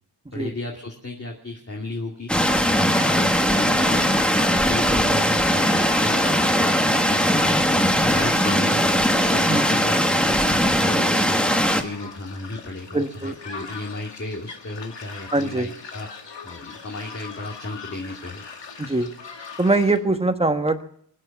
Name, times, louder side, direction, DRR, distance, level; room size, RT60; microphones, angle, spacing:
voice 1, 0.3-4.1 4.3-6.7 7.1-8.8 9.3-10.0 10.3-16.1 16.4-18.4, left 2 dB, 35° left, -1 dB, 2.3 m, -34 dB
sound 1, 2.3-11.8, equal, ahead, 1.4 m, -20 dB
sound 2, 2.5-20.0, left 5 dB, 90° left, 2.3 m, -40 dB
voice 2, 12.9-13.3 15.3-15.7 18.8-19.1 19.6-20.8, right 2 dB, 15° right, 7 dB, 1.3 m, -22 dB
23.0 x 9.9 x 5.9 m, 0.66 s
wide cardioid pair, 110°, 42 cm